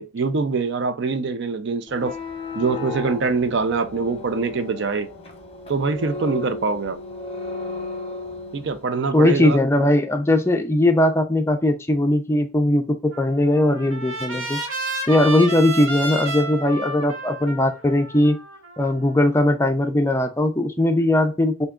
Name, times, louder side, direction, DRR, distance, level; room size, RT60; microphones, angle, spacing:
voice 1, 0.0-2.2 2.5-5.1 5.7-7.0 8.5-9.6, right 4 dB, 60° right, 0.5 m, -24 dB
sound 1, 1.9-8.8, left 3 dB, 30° left, 0.8 m, -34 dB
voice 2, 9.1-14.6 15.1-18.4 18.8-21.7, left 1 dB, 15° left, 0.4 m, -19 dB
Trumpet, 13.1-19.3, right 2 dB, 80° right, 1.0 m, -31 dB
3.4 x 2.8 x 3.6 m
head